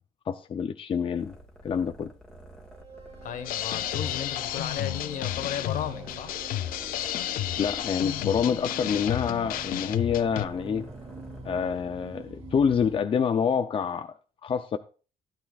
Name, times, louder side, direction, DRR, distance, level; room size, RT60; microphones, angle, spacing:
voice 1, 0.3-1.3 1.6-2.1 7.6-10.9 11.4-14.1 14.4-14.8, left 7 dB, 40° left, 0.6 m, -27 dB
sound 1, 1.1-11.6, right 1 dB, 5° left, 2.1 m, -50 dB
sound 2, 2.7-13.0, right 4 dB, 45° right, 2.5 m, -46 dB
voice 2, 3.2-6.3, left 9 dB, 65° left, 1.5 m, -35 dB
sound 3, 3.4-10.5, left 13 dB, 90° left, 0.6 m, -32 dB
15.5 x 10.5 x 2.4 m
cardioid pair, 125°, 14 cm